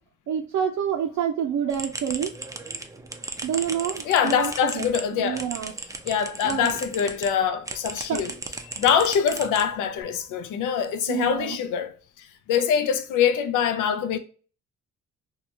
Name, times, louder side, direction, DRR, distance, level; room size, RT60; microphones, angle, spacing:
voice 1, 0.3-2.3 3.4-5.7 6.4-6.8 8.1-8.2 11.1-11.6, right 9 dB, 70° right, 0.5 m, -28 dB
sound 1, 1.7-7.3 7.7-10.0, right 3 dB, 10° right, 0.3 m, -36 dB
voice 2, 4.1-5.4 6.0-8.3 8.6-14.2, left 8 dB, 85° left, 0.5 m, -24 dB
2.9 x 2.3 x 2.5 m
cardioid pair, 90°, 30 cm